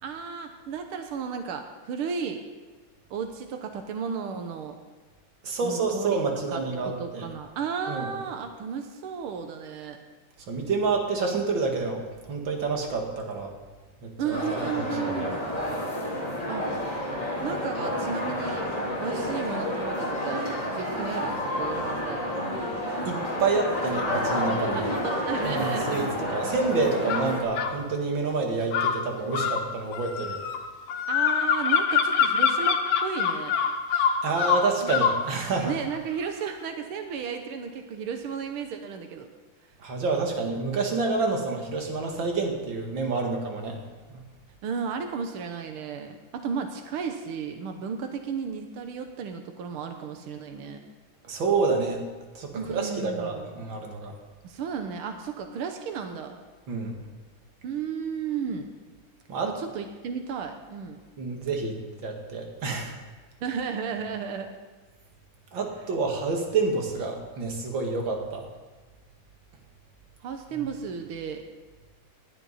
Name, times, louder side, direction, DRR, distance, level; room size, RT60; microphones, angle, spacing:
voice 1, 0.0-2.4 3.1-4.8 5.6-6.2 6.5-10.0 14.2-15.5 16.5-16.7 17.4-22.2 24.7-26.4 31.1-33.5 34.8-35.0 35.6-39.3 44.6-50.8 52.5-53.5 54.4-56.4 57.6-58.7 59.4-61.0 63.4-64.5 70.2-71.4, right 6 dB, 75° right, 6 dB, 1.2 m, -34 dB
voice 2, 5.4-7.3 7.9-8.1 10.5-13.6 14.0-15.3 23.0-24.8 25.4-30.4 34.2-35.7 39.8-43.8 44.1-44.2 51.2-52.0 52.3-54.1 56.7-57.0 59.3-59.6 61.2-63.0 65.5-68.5, right 4 dB, 40° right, 2 dB, 2.2 m, -28 dB
sound 1, 14.3-27.4, left 1 dB, 10° left, 2.9 m, -30 dB
sound 2, 27.1-27.8 28.7-35.2, left 7 dB, 65° left, 1.8 m, -25 dB
19.5 x 12.5 x 4.2 m, 1.3 s
omnidirectional pair, 3.8 m